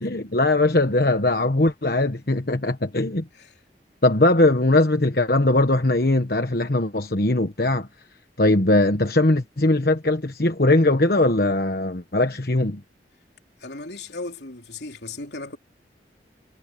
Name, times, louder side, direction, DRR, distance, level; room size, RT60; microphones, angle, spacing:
voice 1, 0.0-3.3 4.0-7.9 8.4-12.8, left 2 dB, 55° left, 1.3 m, -20 dB
voice 2, 13.6-15.6, left 3 dB, 75° left, 3.3 m, -36 dB
head